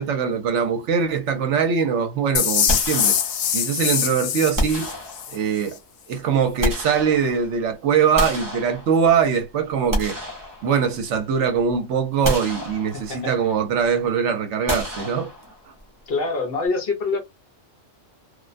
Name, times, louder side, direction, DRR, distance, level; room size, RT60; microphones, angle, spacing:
voice 1, 0.0-3.2 3.5-4.9 5.3-5.8 6.1-10.2 10.6-15.3, right 6 dB, 70° right, 0.9 m, -22 dB
sound 1, 2.4-5.4, left 8 dB, 80° left, 1.0 m, -23 dB
sound 2, 2.7-3.7 4.6-5.6 6.3-7.6 8.2-9.3 9.7-11.2 11.6-11.7 12.2-13.3 14.7-15.8, equal, 20° right, 0.6 m, -29 dB
voice 2, 12.9-13.3 16.1-17.2, left 3 dB, 55° left, 0.8 m, -25 dB
2.4 x 2.1 x 2.4 m
omnidirectional pair, 1.3 m